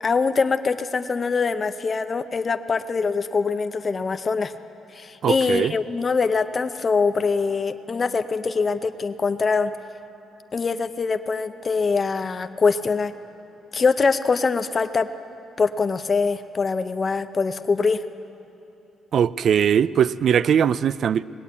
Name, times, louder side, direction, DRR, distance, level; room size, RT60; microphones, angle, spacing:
voice 1, 0.0-4.5 4.9-9.7 10.5-13.1 13.7-15.1 15.6-18.0, left 4 dB, 35° left, 0.5 m, -23 dB
voice 2, 5.2-5.8 19.1-21.2, right 8 dB, 60° right, 0.3 m, -20 dB
20.0 x 8.5 x 8.2 m
cardioid pair, 90°, 0 cm